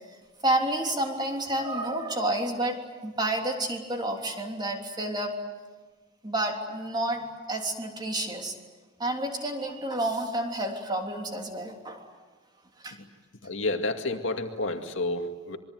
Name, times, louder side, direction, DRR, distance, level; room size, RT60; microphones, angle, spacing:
voice 1, 0.4-5.4 6.2-8.6 9.0-12.1 12.8-13.0, right 1 dB, 20° right, 2 dB, 3.3 m, -30 dB
voice 2, 13.4-15.6, left 2 dB, 75° left, 5 dB, 2.3 m, -30 dB
26.0 x 23.0 x 9.4 m, 1.3 s
head